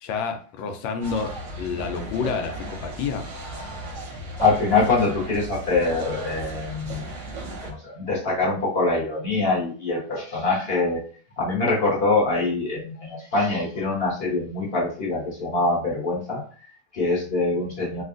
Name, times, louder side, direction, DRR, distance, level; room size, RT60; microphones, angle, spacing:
voice 1, 0.0-3.3, left 5 dB, 85° left, 5 dB, 1.4 m, -29 dB
sound 1, 1.0-7.7, right 1 dB, 55° right, 0.8 m, -36 dB
voice 2, 4.4-7.0 7.6-11.0 11.4-18.0, left 3 dB, 40° left, -5 dB, 1.0 m, -24 dB
3.5 x 2.4 x 2.5 m, 0.42 s
omnidirectional pair, 2.1 m